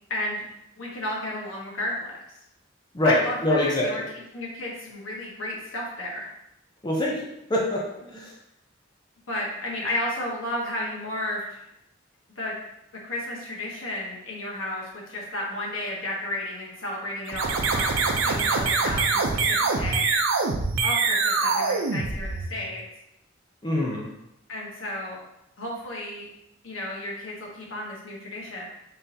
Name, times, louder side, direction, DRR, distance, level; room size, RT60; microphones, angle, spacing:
voice 1, 0.1-0.5 0.8-2.2 3.0-4.0 4.3-6.3 9.3-11.7 12.4-12.5 13.0-20.1 20.8-22.8 24.5-25.2 25.6-26.3 26.6-28.6, left 1 dB, 90° left, -2 dB, 1.2 m, -32 dB
voice 2, 2.9-3.9 6.8-7.2 7.5-7.8 8.1-8.3 23.6-24.1, left 1 dB, 20° left, -3 dB, 0.6 m, -24 dB
sound 1, 17.3-22.7, right 4 dB, 80° right, 0.5 m, -24 dB
4.0 x 3.8 x 2.7 m, 0.83 s
head